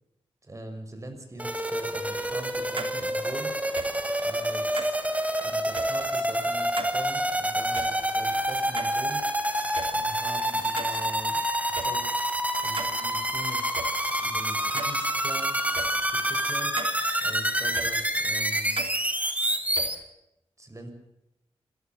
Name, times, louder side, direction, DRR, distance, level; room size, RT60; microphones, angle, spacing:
voice 1, 0.4-3.5 4.2-5.0 5.4-9.2 9.9-12.0 12.6-15.6 16.1-16.8 17.2-18.8 20.6-20.9, right 1 dB, 30° right, 5 dB, 6.5 m, -42 dB
sound 1, 1.4-19.9, right 1 dB, 15° right, 3.3 m, -27 dB
sound 2, 2.8-2.9 3.8-3.9 4.8-5.0 5.8-5.9 6.8-6.9 7.8-7.9 8.8-9.3 9.8-9.9 10.8-11.0 11.8-11.9 12.8-12.9 13.8-13.9 14.8-15.0 15.8-15.9 16.8-16.9 17.8-17.9 18.8-19.0 19.8-19.9, right 4 dB, 55° right, 3.1 m, -35 dB
27.0 x 16.5 x 7.2 m, 0.87 s
cardioid pair, 65°, 10 cm